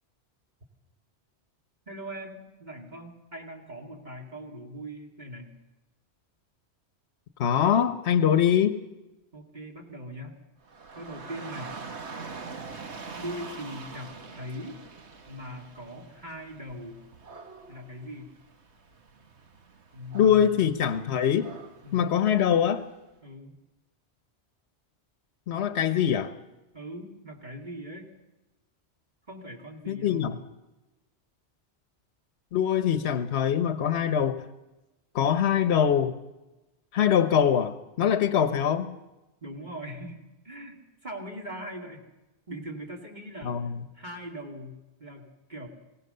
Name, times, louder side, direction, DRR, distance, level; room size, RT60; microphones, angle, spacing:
voice 1, 1.9-5.5 9.3-10.4 10.9-11.8 13.2-14.8 15.3-17.0 17.7-18.3 19.9-20.6 21.8-22.2 23.2-23.5 26.7-28.1 29.3-30.4 39.4-42.0 42.5-45.7, equal, 40° right, 0 dB, 2.5 m, -41 dB
voice 2, 7.4-8.8 20.1-21.5 21.9-22.8 25.5-26.3 29.9-30.4 32.5-34.4 35.1-36.2 36.9-38.9 43.4-43.8, left 9 dB, 75° left, 12 dB, 1.1 m, -23 dB
Dog / Rain, 10.6-22.8, right 4 dB, 85° right, 1.8 m, -44 dB
23.0 x 17.0 x 6.7 m, 1.0 s
omnidirectional pair, 1.1 m